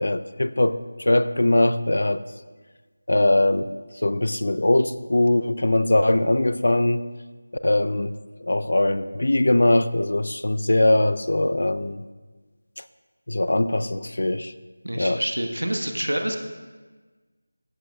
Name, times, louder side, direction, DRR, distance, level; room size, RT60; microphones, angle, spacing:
voice 1, 0.0-2.2 3.1-3.8 4.0-7.0 7.6-12.0 13.3-14.5 15.0-15.2, left 1 dB, 65° left, 13 dB, 0.4 m, -21 dB
voice 2, 14.8-16.4, right 1 dB, 85° right, 4 dB, 1.1 m, -27 dB
14.0 x 7.4 x 2.3 m, 1.3 s
figure-of-eight pair, 170°, 0 cm